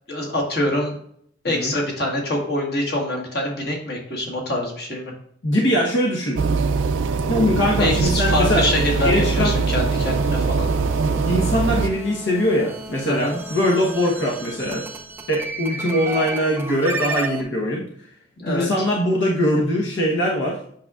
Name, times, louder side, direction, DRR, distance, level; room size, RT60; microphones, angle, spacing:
voice 1, 0.1-0.9 1.4-5.1 7.8-10.7 13.1-13.4 18.4-18.7, left 1 dB, 55° left, -1 dB, 1.6 m, -25 dB
voice 2, 5.4-6.4 7.3-8.7 9.0-9.6 11.2-14.9 15.3-17.8 18.5-20.6, equal, 80° left, -2 dB, 1.1 m, -21 dB
sound 1, 6.4-11.9, right 4 dB, 85° right, 0.4 m, -21 dB
sound 2, 8.1-17.4, right 3 dB, 10° right, 0.5 m, -33 dB
7.7 x 5.9 x 2.4 m, 0.67 s
head